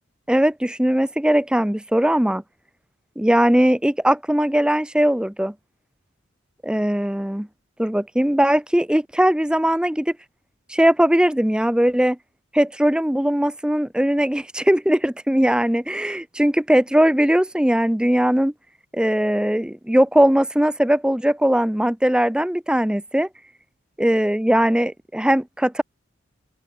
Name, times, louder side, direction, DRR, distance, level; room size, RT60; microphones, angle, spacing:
voice 1, 0.3-2.4 3.2-5.5 6.6-7.5 7.8-10.2 10.7-12.2 12.5-18.5 18.9-23.3 24.0-25.8, equal, 5° right, 0.5 m, -19 dB
open air
head